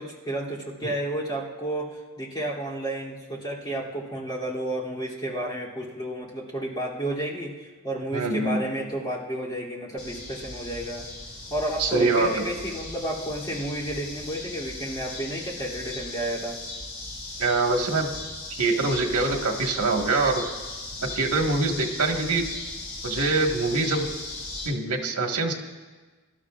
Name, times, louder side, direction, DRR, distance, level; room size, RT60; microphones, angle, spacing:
voice 1, 0.0-11.0 11.5-16.6, right 1 dB, 20° left, -6 dB, 2.9 m, -31 dB
voice 2, 8.1-8.6 11.8-12.5 17.4-18.1 18.5-20.5 21.1-22.5 23.0-24.1 24.6-25.5, right 3 dB, 80° right, 2 dB, 1.6 m, -24 dB
sound 1, 10.0-24.7, left 2 dB, 45° left, 3.1 m, -37 dB
23.5 x 12.0 x 2.5 m, 1.3 s
head